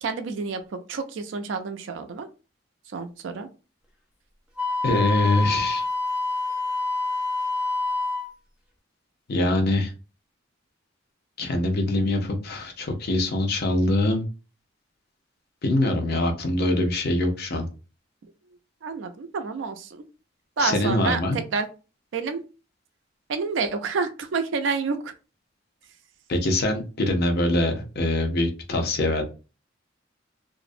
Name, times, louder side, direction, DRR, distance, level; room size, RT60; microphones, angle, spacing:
voice 1, 0.0-2.3 2.9-3.5 18.8-20.0 20.6-21.7 22.1-22.4 23.3-25.1, right 4 dB, 70° right, 8 dB, 0.4 m, -29 dB
Wind instrument woodwind instrument, 4.6-8.3, left 3 dB, 5° right, 0.5 m, -27 dB
voice 2, 4.8-5.8 9.3-9.9 11.4-14.2 15.6-17.7 20.6-21.4 26.3-29.2, left 1 dB, 55° left, 3 dB, 0.6 m, -23 dB
2.4 x 2.0 x 2.5 m, 0.33 s
head